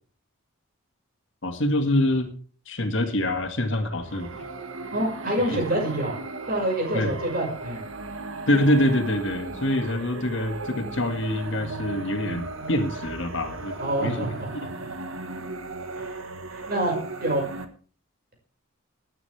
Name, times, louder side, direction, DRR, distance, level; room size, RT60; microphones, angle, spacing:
voice 1, 1.4-2.3 2.7-4.4 5.5-5.6 6.9-7.1 8.5-14.3, left 1 dB, 60° left, 6 dB, 2.1 m, -25 dB
sound 1, 4.0-17.6, right 2 dB, 70° right, 1.6 m, -36 dB
voice 2, 4.9-6.2 6.5-7.8 13.8-14.7 16.0-16.2 16.5-17.4, right 1 dB, 45° right, 1 dB, 5.9 m, -27 dB
20.0 x 9.8 x 3.5 m, 0.43 s
head